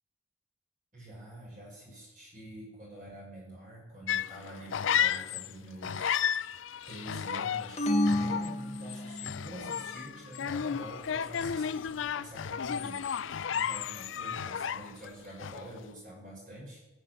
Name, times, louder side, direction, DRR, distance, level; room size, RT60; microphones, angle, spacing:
voice 1, 0.9-6.2 6.5-16.8, right 1 dB, 40° right, -3 dB, 5.8 m, -46 dB
sound 1, 4.1-5.5 5.8-15.1 15.4-15.8, left 8 dB, 85° left, 0.5 m, -33 dB
sound 2, 7.8-9.4, left 1 dB, 35° left, 1.2 m, -29 dB
24.0 x 8.1 x 7.4 m, 1.2 s
head